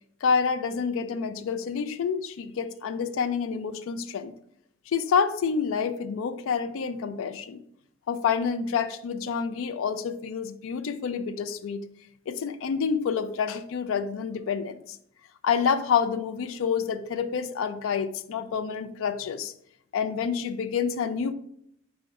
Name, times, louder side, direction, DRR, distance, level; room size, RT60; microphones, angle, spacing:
voice 1, 0.2-4.3 4.9-7.6 8.1-11.8 12.3-15.0 15.4-19.5 19.9-21.3, left 6 dB, 85° left, 11 dB, 0.3 m, -28 dB
4.8 x 2.1 x 4.5 m, 0.70 s
head